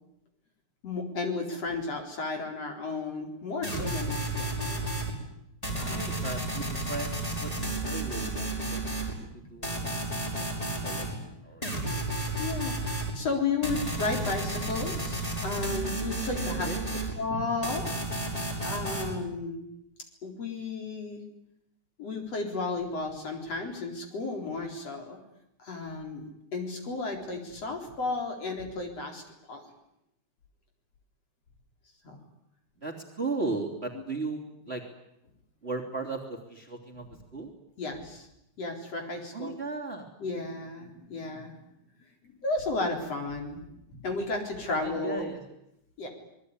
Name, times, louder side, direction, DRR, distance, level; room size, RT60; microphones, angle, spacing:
voice 1, 0.8-4.8 5.8-6.0 9.4-9.5 12.4-16.7 17.2-17.9 18.6-19.6 20.2-21.2 22.0-25.2 25.6-29.2 29.5-29.6 32.1-32.2 37.8-38.3 38.6-39.5 40.2-41.5 42.2-43.6 43.9-45.2 46.0-46.1, left 3 dB, 50° left, 3 dB, 5.1 m, -33 dB
sound 1, 3.6-5.1 5.6-9.1 9.6-11.1 11.6-13.1 13.6-17.1 17.6-19.1, right 2 dB, 10° left, 6.0 m, -32 dB
voice 2, 5.7-8.8 9.2-12.0 16.4-16.8 32.8-34.8 35.6-37.5 39.3-40.1 44.6-45.4, right 3 dB, 20° right, 3 dB, 3.3 m, -37 dB
27.0 x 21.0 x 9.9 m, 0.80 s
omnidirectional pair, 3.7 m